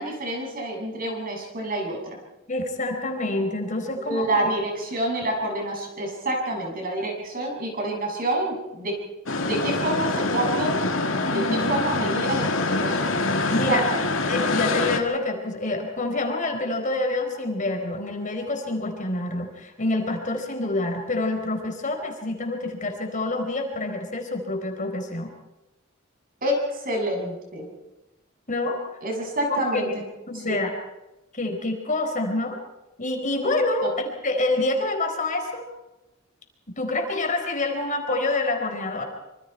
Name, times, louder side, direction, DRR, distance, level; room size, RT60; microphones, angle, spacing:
voice 1, 0.0-2.2 4.0-9.0 9.4-10.8 11.3-12.5 12.8-13.1 13.7-14.1 26.4-27.7 29.0-29.9 30.5-30.6 33.8-33.9, right 1 dB, 45° right, 0 dB, 7.3 m, -27 dB
voice 2, 2.5-4.5 11.2-11.7 13.5-13.9 14.3-25.3 28.5-28.8 29.5-29.9 30.3-30.7 31.3-32.6 33.0-35.6 36.8-39.0, left 2 dB, 40° left, 4 dB, 4.2 m, -27 dB
sound 1, 9.3-15.0, left 3 dB, 80° left, 2.3 m, -25 dB
26.0 x 26.0 x 4.6 m, 1.0 s
head